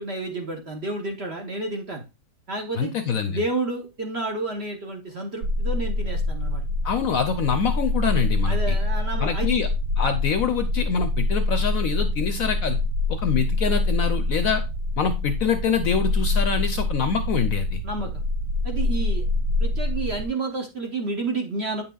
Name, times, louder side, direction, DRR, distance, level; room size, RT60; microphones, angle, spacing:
voice 1, 0.0-2.1 2.5-2.9 3.3-6.6 8.5-9.7 17.8-18.1 18.6-19.2 19.6-21.8, right 3 dB, 45° right, 2 dB, 0.9 m, -30 dB
voice 2, 2.8-3.4 6.8-8.8 9.2-9.7 10.0-12.8 13.1-14.6 15.0-17.8, left 6 dB, 65° left, 8 dB, 0.9 m, -25 dB
sound 1, 5.4-20.3, left 2 dB, 90° right, 0.7 m, -25 dB
8.7 x 5.8 x 2.3 m, 0.28 s
omnidirectional pair, 1.9 m